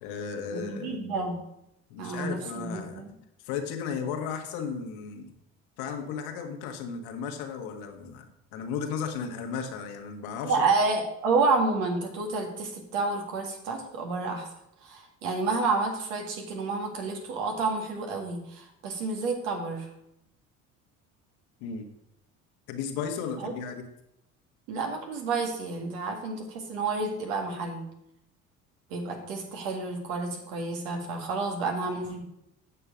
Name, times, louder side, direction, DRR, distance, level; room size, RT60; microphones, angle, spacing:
voice 1, 0.0-1.3 1.9-3.0 3.4-5.4 5.8-10.6 21.6-21.9 22.7-23.9, left 6 dB, 70° left, 5 dB, 1.5 m, -35 dB
voice 2, 0.5-1.4 2.0-3.1 10.4-14.4 14.8-19.9 23.4-23.5 24.7-27.8 28.9-32.2, right 3 dB, 75° right, 2 dB, 2.0 m, -29 dB
8.3 x 6.9 x 5.0 m, 0.80 s
hypercardioid pair, 60°, 40 cm